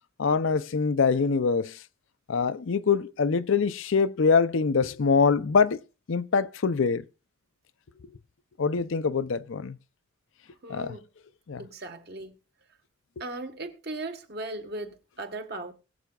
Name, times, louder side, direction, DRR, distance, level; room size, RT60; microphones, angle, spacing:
voice 1, 0.2-1.8 2.3-5.8 6.1-7.0 8.6-9.8 10.7-11.0 11.5-11.6, left 5 dB, 70° left, 0.5 m, -24 dB
voice 2, 10.6-11.0 11.6-12.3 13.2-15.7, right 2 dB, 50° right, 1.4 m, -37 dB
22.0 x 7.9 x 2.3 m
head